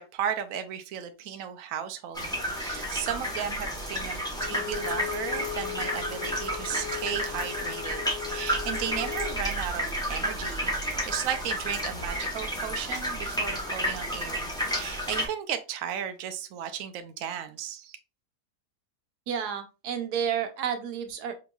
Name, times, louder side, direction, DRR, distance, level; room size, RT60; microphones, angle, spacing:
voice 1, 0.0-18.0, right 9 dB, 70° right, 0.9 m, -35 dB
sound 1, 2.1-15.3, equal, 5° left, 0.8 m, -31 dB
Bowed string instrument, 4.4-9.4, left 16 dB, 65° left, 1.3 m, -38 dB
voice 2, 19.3-21.3, right 8 dB, 90° right, 1.3 m, -30 dB
5.2 x 2.9 x 2.2 m
omnidirectional pair, 1.7 m